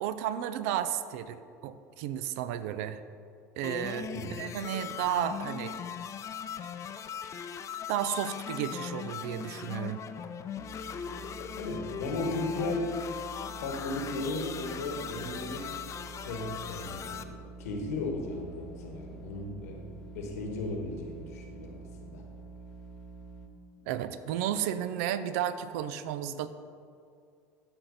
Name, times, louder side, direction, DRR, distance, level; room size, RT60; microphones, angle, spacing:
voice 1, 0.0-3.0 3.6-5.7 7.9-10.0 23.9-26.5, right 10 dB, 70° right, 13 dB, 0.4 m, -33 dB
sound 1, 3.6-17.2, left 7 dB, 40° left, 0.5 m, -39 dB
sound 2, 10.6-23.5, right 3 dB, 5° left, 1.0 m, -47 dB
voice 2, 11.6-13.0 13.6-15.7 16.2-22.2, left 2 dB, 85° left, 2 dB, 1.3 m, -36 dB
13.0 x 4.4 x 4.0 m, 2.4 s
hypercardioid pair, 80°, 8 cm